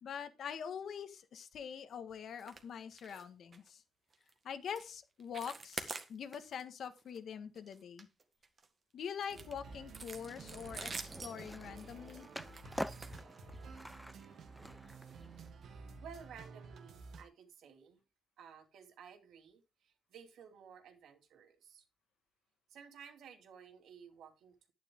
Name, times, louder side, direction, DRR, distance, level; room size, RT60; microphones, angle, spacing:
voice 1, 0.0-3.8 4.4-8.1 8.9-12.3, left 7 dB, 50° left, 10 dB, 1.6 m, -44 dB
sound 1, 2.4-2.6 2.9-3.2 3.5-3.7 4.1-4.3 4.7-4.9 5.2-6.6 7.0-7.2 7.6-8.7 9.2-13.8 14.6-14.7 15.1-15.2 15.6-15.7, right 4 dB, 30° right, 1.7 m, -47 dB
sound 2, 9.3-17.2, right 4 dB, 60° right, 2.4 m, -52 dB
Skateboard, 10.2-15.5, equal, ahead, 0.5 m, -47 dB
voice 2, 16.0-18.0 18.4-21.8 22.7-24.7, right 7 dB, 75° right, 6 dB, 2.9 m, -55 dB
12.0 x 10.0 x 3.7 m, 0.26 s
wide cardioid pair, 180°, 0 cm